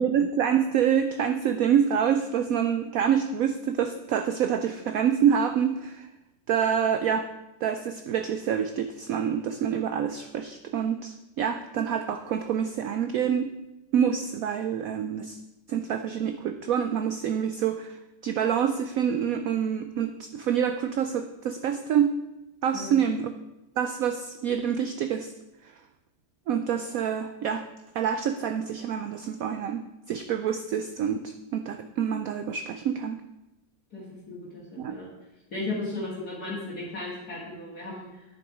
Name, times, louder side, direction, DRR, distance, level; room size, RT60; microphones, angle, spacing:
voice 1, 0.0-6.1 6.5-7.3 7.6-13.5 13.9-15.4 15.7-22.1 22.6-23.3 23.8-25.3 25.6-25.7 26.5-27.7 27.9-33.2 34.8-35.0, right 8 dB, 85° right, 9 dB, 0.7 m, -27 dB
voice 2, 33.9-35.1 35.5-38.3, left 2 dB, 55° left, -6 dB, 2.4 m, -35 dB
9.9 x 6.9 x 4.8 m, 0.97 s
omnidirectional pair, 2.0 m